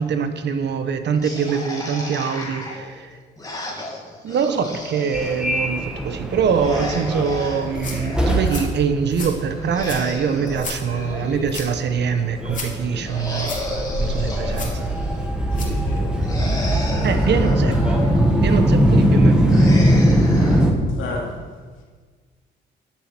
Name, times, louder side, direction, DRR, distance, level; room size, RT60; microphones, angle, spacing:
voice 1, 0.0-3.2 4.2-13.5 14.0-14.9 17.0-18.0 18.4-19.5, right 6 dB, 60° right, 9 dB, 1.2 m, -24 dB
sound 1, 1.2-5.5 6.5-8.7 9.5-11.9 13.0-15.3 16.2-18.4 19.4-20.6, left 1 dB, 20° left, 2.7 m, -33 dB
Subway metro underground, 5.1-20.7, equal, 5° right, 2.0 m, -21 dB
sound 2, 7.6-15.8, left 3 dB, 40° left, 2.9 m, -37 dB
voice 2, 15.5-16.4 16.8-16.9 20.9-21.4, left 3 dB, 80° left, -1 dB, 2.9 m, -34 dB
13.0 x 7.5 x 6.1 m, 1.5 s
cardioid pair, 90°, 20 cm